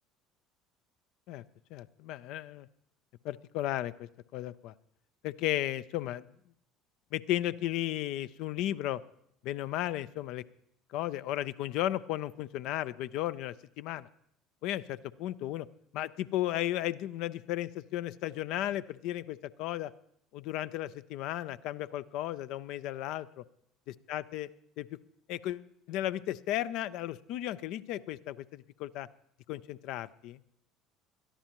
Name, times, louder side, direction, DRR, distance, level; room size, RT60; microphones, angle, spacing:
voice 1, 1.7-2.7 3.2-4.7 5.2-6.3 7.1-9.0 9.4-10.4 10.9-14.1 14.6-15.7 15.9-19.9 20.3-23.4 24.1-24.5 24.8-25.0 25.3-29.1 29.5-30.4, left 13 dB, 60° left, 15 dB, 0.4 m, -34 dB
21.0 x 13.0 x 3.0 m, 0.71 s
hypercardioid pair, 65°, 0 cm